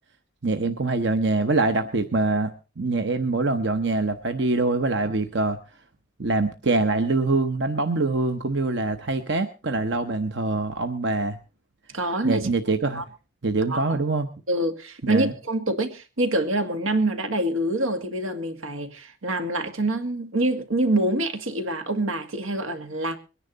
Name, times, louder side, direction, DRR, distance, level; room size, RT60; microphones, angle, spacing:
voice 1, 0.4-5.6 6.2-11.4 12.2-13.0 13.4-14.3 15.0-15.3, right 3 dB, 55° right, 0.9 m, -24 dB
voice 2, 11.9-12.5 12.9-13.0 13.7-14.0 14.5-23.2, right 1 dB, 85° right, 2.0 m, -26 dB
22.5 x 10.5 x 4.0 m
head